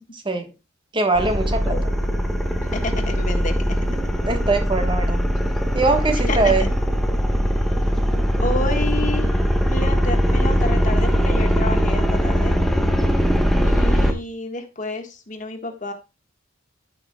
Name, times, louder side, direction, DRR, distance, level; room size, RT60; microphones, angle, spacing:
voice 1, 0.1-0.5 0.9-1.7 3.9-5.2 5.7-6.7, right 3 dB, 25° right, 1.2 m, -22 dB
sound 1, 1.1-14.1, equal, ahead, 1.0 m, -20 dB
voice 2, 2.6-3.5 6.3-6.5 8.4-9.3 9.7-12.6 13.5-15.9, left 2 dB, 40° left, 1.5 m, -29 dB
14.0 x 5.7 x 2.3 m
head